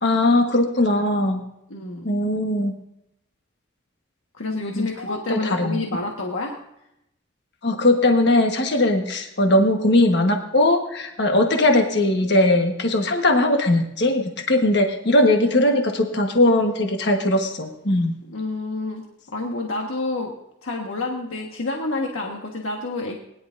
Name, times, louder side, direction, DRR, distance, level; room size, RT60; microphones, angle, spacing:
voice 1, 0.0-1.4 2.0-2.7 4.7-5.8 7.6-18.1, left 1 dB, 55° left, 3 dB, 1.4 m, -19 dB
voice 2, 1.7-2.1 4.3-6.6 18.3-19.0 19.3-20.3 20.6-23.2, left 2 dB, 85° left, 0 dB, 1.5 m, -28 dB
20.5 x 11.0 x 2.6 m, 0.81 s
head